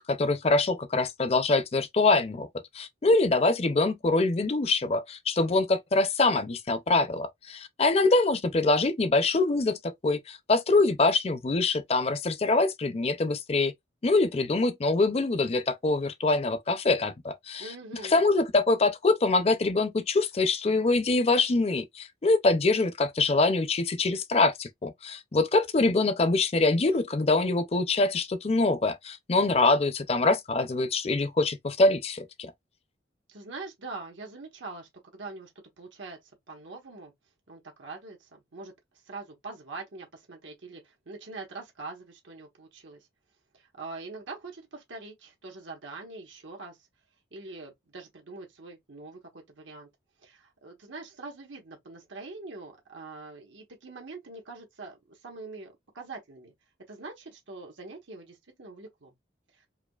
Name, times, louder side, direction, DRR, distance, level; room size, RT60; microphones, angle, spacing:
voice 1, 0.0-2.5 2.7-13.7 14.0-17.7 18.0-32.5, left 3 dB, 35° left, 0.4 m, -24 dB
voice 2, 17.6-18.3 33.3-35.5 35.8-36.2 36.5-37.1 37.5-38.7 39.1-43.1 43.5-46.8 47.3-49.9 50.2-56.5 56.9-59.1 59.5-59.6, right 3 dB, 85° right, 1.2 m, -43 dB
4.7 x 2.4 x 2.3 m
head